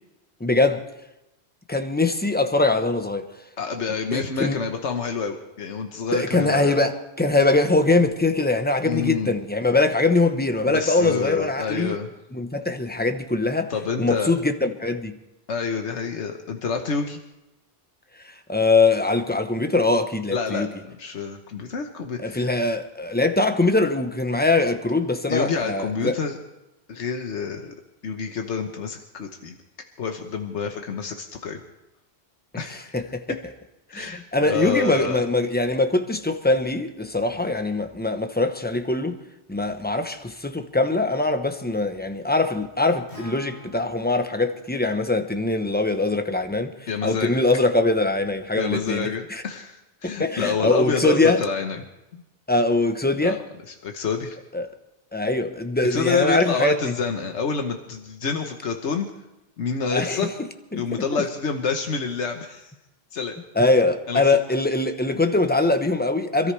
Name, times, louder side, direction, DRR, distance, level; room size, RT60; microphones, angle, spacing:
voice 1, 0.4-0.9 1.7-3.3 4.1-4.6 6.1-12.0 12.3-13.7 14.0-15.2 18.5-20.7 22.2-26.2 32.7-33.4 33.9-39.2 39.5-49.4 50.0-51.4 52.5-53.4 54.5-54.7 55.1-56.9 59.9-60.3 60.7-61.2 63.5-66.5, left 2 dB, 10° left, 0.9 m, -22 dB
voice 2, 3.6-6.8 8.8-9.3 10.7-12.1 13.7-14.3 15.5-17.2 20.3-22.5 25.3-26.4 26.9-27.7 28.0-29.6 30.0-31.6 32.6-33.0 33.9-35.2 46.9-47.4 48.5-51.8 52.1-52.2 53.2-53.4 53.7-54.4 55.9-59.1 59.6-60.3 60.7-62.7 63.1-63.3 64.1-64.4, left 5 dB, 90° left, 1.4 m, -28 dB
Acoustic guitar, 43.1-47.3, left 1 dB, 55° left, 6.2 m, -49 dB
27.0 x 13.5 x 3.3 m
omnidirectional pair, 1.1 m